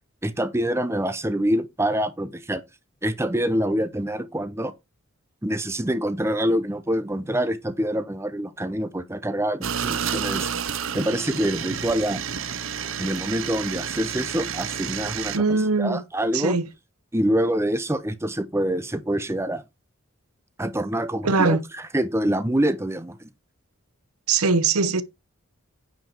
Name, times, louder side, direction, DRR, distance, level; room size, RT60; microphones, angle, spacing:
voice 1, 0.2-2.6 3.0-4.7 5.4-10.5 10.9-12.2 13.0-16.6 17.1-19.6 20.6-23.3, right 1 dB, 10° right, 0.8 m, -26 dB
sound 1, 9.6-15.4, right 7 dB, 60° right, 0.8 m, -30 dB
voice 2, 15.3-16.0 16.3-16.6 21.2-21.6 24.3-25.0, right 4 dB, 85° right, 0.9 m, -21 dB
9.3 x 5.1 x 4.5 m
head